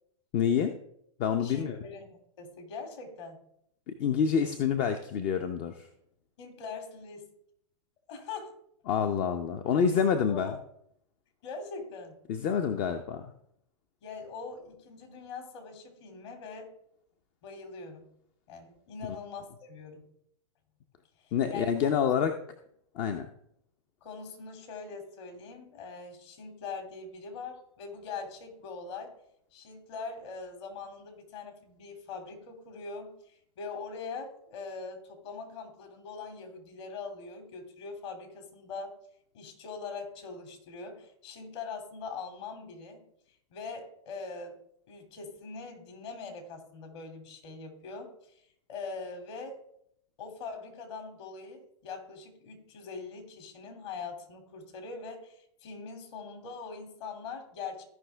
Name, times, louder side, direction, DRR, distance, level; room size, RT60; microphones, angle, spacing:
voice 1, 0.3-0.8 1.2-1.8 3.9-5.9 8.9-10.5 12.3-13.3 21.3-22.3 22.9-23.3, left 7 dB, 35° left, 7 dB, 0.8 m, -27 dB
voice 2, 1.4-3.4 6.4-7.3 8.1-8.5 10.3-10.6 11.4-12.1 14.0-16.7 17.4-18.0 18.5-20.1 21.2-21.9 24.0-29.1 29.5-38.9 39.3-43.0 43.5-44.6 44.9-49.6 50.2-57.8, left 4 dB, 55° left, 5 dB, 2.8 m, -42 dB
15.0 x 5.6 x 3.4 m, 0.71 s
hypercardioid pair, 110°, 17 cm